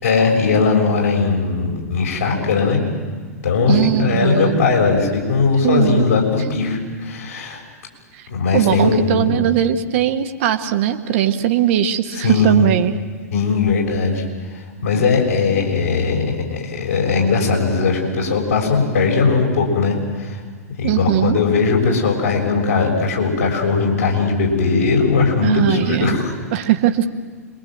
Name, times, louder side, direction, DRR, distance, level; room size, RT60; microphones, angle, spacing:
voice 1, 0.0-2.8 3.4-7.6 8.3-9.3 12.2-12.7 13.3-14.2 14.5-20.4 20.8-26.3, left 4 dB, 65° left, 0 dB, 6.9 m, -19 dB
voice 2, 3.7-4.6 5.6-6.4 8.1-12.9 20.8-21.4 25.4-26.2 26.5-27.1, right 11 dB, 45° right, 7 dB, 1.4 m, -19 dB
27.0 x 23.0 x 7.8 m, 1.5 s
figure-of-eight pair, 100°, 9 cm